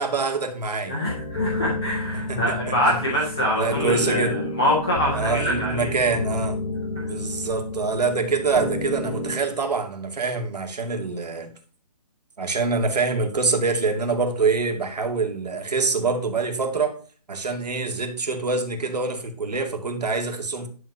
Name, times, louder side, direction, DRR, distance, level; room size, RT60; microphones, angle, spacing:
voice 1, 0.0-1.0 2.3-3.0 3.6-4.4 5.1-6.6 7.1-11.5 12.4-17.0 17.3-20.7, right 4 dB, 75° right, 4 dB, 2.5 m, -25 dB
voice 2, 0.9-5.9 6.9-7.1, equal, 5° left, -7 dB, 0.3 m, -25 dB
sound 1, 1.1-9.4, left 2 dB, 60° left, 2.2 m, -30 dB
11.0 x 3.9 x 6.8 m, 0.40 s
hypercardioid pair, 160°, 21 cm